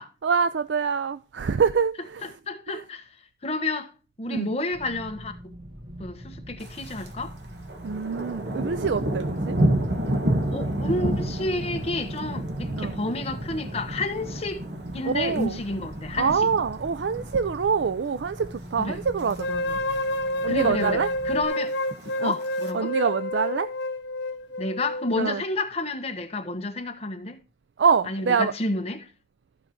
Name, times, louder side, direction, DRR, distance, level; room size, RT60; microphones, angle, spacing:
voice 1, 0.2-2.3 2.7-2.8 4.3-4.5 7.8-9.6 12.8-12.9 15.0-15.6 16.2-19.8 20.4-21.1 22.2-22.3 22.7-23.7 25.2-25.4 27.8-28.5, right 5 dB, 85° right, 0.4 m, -25 dB
voice 2, 2.2-3.1 3.4-3.9 4.2-5.3 6.0-7.3 10.5-14.7 14.9-16.5 18.8-19.0 20.5-21.8 22.2-22.9 24.6-27.4 28.1-29.1, left 2 dB, 35° left, 1.2 m, -30 dB
sound 1, 4.7-21.5, right 1 dB, 35° right, 1.3 m, -42 dB
Thunder, 6.6-7.1 7.4-17.8 18.2-18.5 19.0-19.4 19.7-19.8 19.9-20.0 20.4-21.0 21.8-22.7, right 1 dB, 70° right, 1.7 m, -30 dB
sound 2, 19.4-25.4, left 1 dB, 80° left, 0.7 m, -29 dB
14.0 x 5.0 x 4.5 m
head